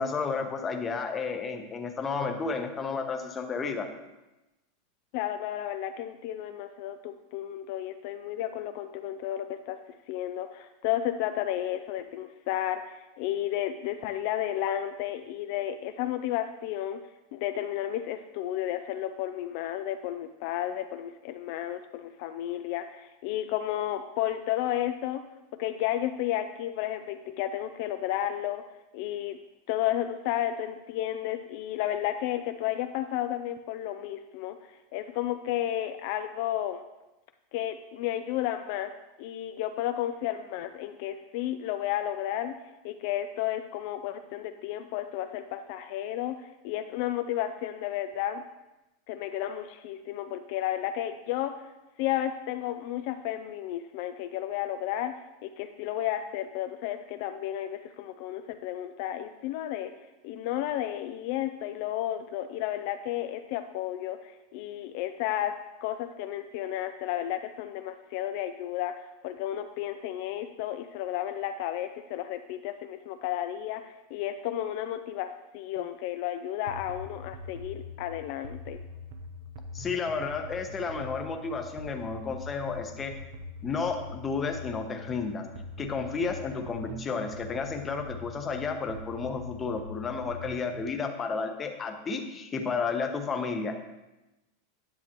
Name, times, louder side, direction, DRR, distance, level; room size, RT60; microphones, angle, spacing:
voice 1, 0.0-3.9 79.7-83.1 83.6-85.5 85.8-93.8, left 4 dB, 20° left, 5 dB, 0.9 m, -32 dB
voice 2, 5.1-9.8 10.1-17.0 17.3-25.2 25.6-28.6 28.9-29.4 29.7-34.6 34.9-36.8 37.5-38.9 39.2-42.5 42.8-48.4 49.1-51.5 52.0-55.1 55.4-59.9 60.2-65.5 65.8-78.8, left 12 dB, 55° left, 8 dB, 0.4 m, -32 dB
sound 1, 76.7-90.9, left 2 dB, 80° right, 0.9 m, -43 dB
9.8 x 6.7 x 3.0 m, 1.0 s
supercardioid pair, 145°, 0 cm